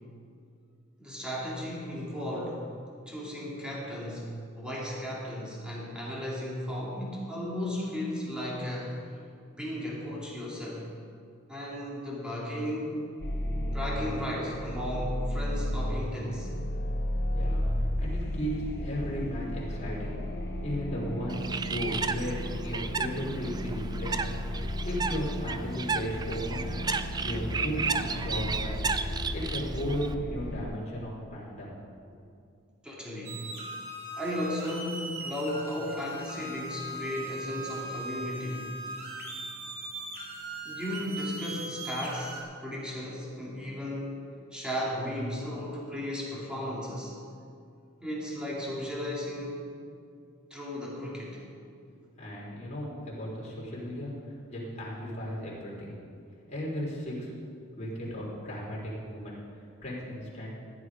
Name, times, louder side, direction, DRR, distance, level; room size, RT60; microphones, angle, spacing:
voice 1, 1.0-2.6 3.1-9.0 9.6-10.8 11.5-13.0 13.7-16.5 32.8-33.5 34.2-38.7 40.6-44.2 44.5-47.2 48.0-49.7 50.5-51.5, left 1 dB, 5° right, -5 dB, 2.5 m, -35 dB
sound 1, 13.2-30.6, left 1 dB, 55° left, 1.1 m, -34 dB
voice 2, 17.2-20.1 20.6-24.5 24.8-26.6 27.2-28.9 29.3-31.7 52.2-54.1 54.5-55.9 56.5-57.3 57.8-59.3 59.8-60.5, equal, 35° left, -5 dB, 3.8 m, -35 dB
Bird, 21.3-30.1, right 5 dB, 20° right, 0.4 m, -34 dB
sound 2, 33.2-42.4, right 2 dB, 50° right, 2.6 m, -39 dB
14.5 x 10.5 x 5.0 m, 2.3 s
head